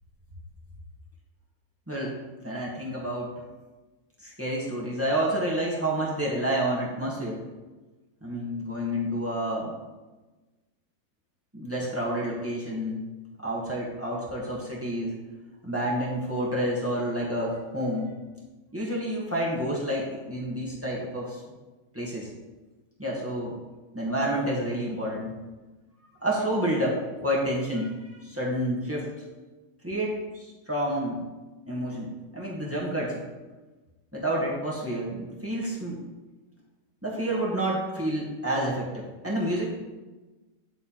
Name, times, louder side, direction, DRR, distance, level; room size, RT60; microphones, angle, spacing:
voice 1, 2.4-3.3 4.2-7.4 8.2-9.7 11.5-13.0 13.4-15.2 15.6-18.1 18.7-21.4 21.9-22.3 23.0-23.5 23.9-25.3 26.2-29.1 29.8-31.2 31.7-33.2 34.1-36.0 37.0-39.6, right 1 dB, 10° right, -5 dB, 1.3 m, -29 dB
9.3 x 3.3 x 4.3 m, 1.2 s
omnidirectional pair, 1.7 m